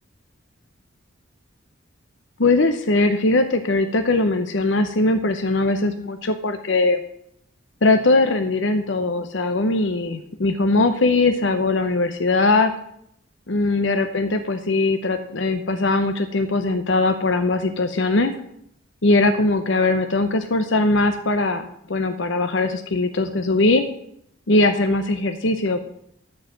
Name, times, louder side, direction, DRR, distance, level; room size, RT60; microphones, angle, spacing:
voice 1, 2.4-7.0 7.8-12.7 13.5-18.3 19.0-23.9 24.5-25.8, left 2 dB, 60° left, 7 dB, 0.8 m, -20 dB
12.5 x 4.8 x 7.5 m, 0.73 s
head